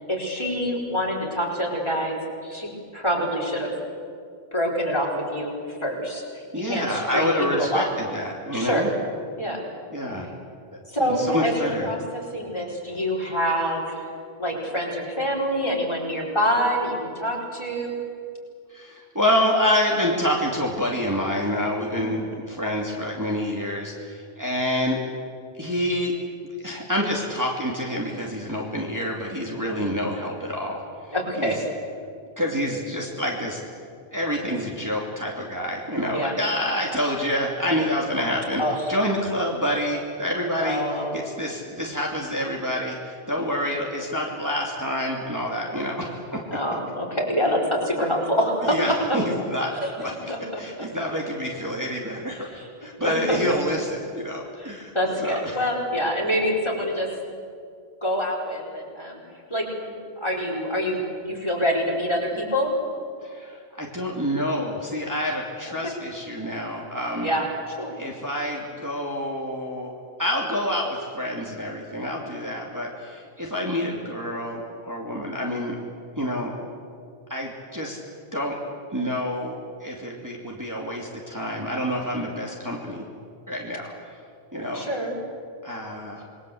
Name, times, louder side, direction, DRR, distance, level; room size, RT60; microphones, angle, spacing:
voice 1, 0.1-2.2 2.4-3.7 4.5-7.9 8.5-8.8 9.4-9.6 10.9-14.1 14.4-17.9 21.9-22.1 29.6-29.9 31.1-31.6 36.1-36.3 38.6-38.7 40.6-41.1 46.5-48.8 49.8-50.6 52.4-52.7 53.0-53.6 54.6-57.1 58.0-59.2 59.5-61.0 61.2-62.7 67.2-68.0 84.7-85.1, equal, 25° left, -1 dB, 4.8 m, -26 dB
voice 2, 6.5-8.9 9.9-10.3 11.0-11.9 18.7-25.0 25.6-26.1 26.6-31.6 32.4-33.6 34.1-46.6 48.6-50.3 50.6-54.9 55.2-55.6 63.2-67.3 68.0-69.9 70.2-75.8 76.2-76.5 77.3-78.0 78.3-78.6 78.9-83.1 83.5-84.2 84.5-84.9 85.6-86.2, equal, 15° right, -2 dB, 2.7 m, -27 dB
27.5 x 21.0 x 7.9 m, 2.2 s
omnidirectional pair, 1.1 m